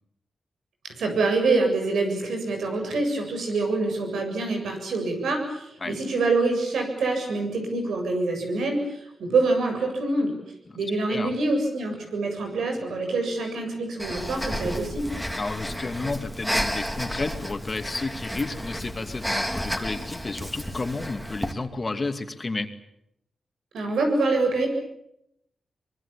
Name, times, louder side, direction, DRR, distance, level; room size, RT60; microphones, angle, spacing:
voice 1, 0.8-10.3 10.7-15.1 23.7-24.7, right 3 dB, 90° right, 3 dB, 7.7 m, -25 dB
Breathing, 14.0-21.5, equal, 5° right, 3.1 m, -32 dB
voice 2, 15.4-22.7, left 3 dB, 35° left, 7 dB, 2.6 m, -31 dB
25.0 x 22.0 x 8.7 m, 0.80 s
cardioid pair, 70°, 0 cm